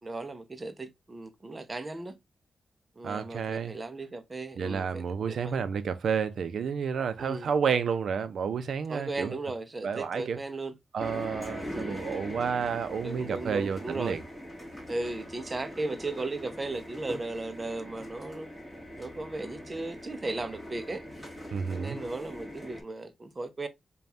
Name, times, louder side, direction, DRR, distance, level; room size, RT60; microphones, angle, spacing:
voice 1, 0.0-2.1 3.0-5.7 7.2-7.5 8.9-10.7 11.7-12.1 13.0-14.2 14.9-18.5 19.0-21.0 21.7-23.7, right 2 dB, 25° right, 0.5 m, -36 dB
voice 2, 3.0-3.7 4.6-9.3 9.8-10.4 10.9-14.2 21.5-22.0, right 6 dB, 75° right, 0.5 m, -30 dB
sound 1, 11.0-22.8, equal, 5° left, 1.5 m, -42 dB
5.1 x 2.3 x 2.7 m
wide cardioid pair, 145°, 0 cm